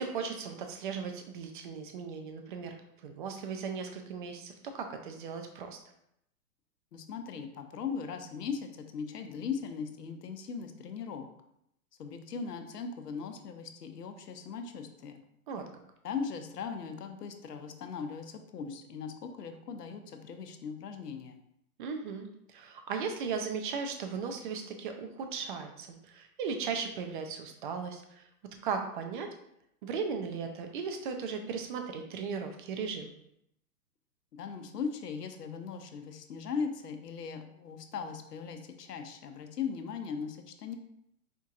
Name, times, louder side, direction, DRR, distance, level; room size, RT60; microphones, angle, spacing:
voice 1, 0.0-2.8 3.0-5.8 15.5-15.7 21.8-28.3 28.6-29.3 29.8-33.1, right 5 dB, 35° right, 5 dB, 0.4 m, -37 dB
voice 2, 6.9-11.3 12.0-15.2 16.0-21.4 34.3-40.8, left 6 dB, 85° left, 7 dB, 0.6 m, -39 dB
4.4 x 2.6 x 2.4 m, 0.76 s
hypercardioid pair, 120°, 46 cm